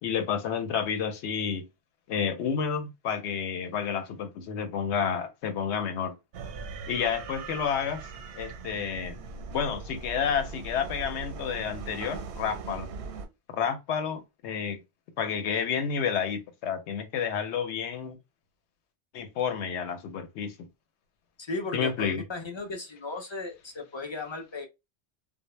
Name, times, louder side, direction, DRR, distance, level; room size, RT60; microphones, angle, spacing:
voice 1, 0.0-1.6 2.1-6.1 6.9-8.1 8.3-9.2 9.5-12.9 13.5-14.8 15.2-18.2 19.1-20.5 21.7-22.2, left 7 dB, 90° left, 0.9 m, -30 dB
sound 1, 6.3-13.3, right 4 dB, 90° right, 0.9 m, -40 dB
voice 2, 21.4-24.7, left 3 dB, 40° left, 0.4 m, -36 dB
2.1 x 2.0 x 3.0 m
omnidirectional pair, 1.1 m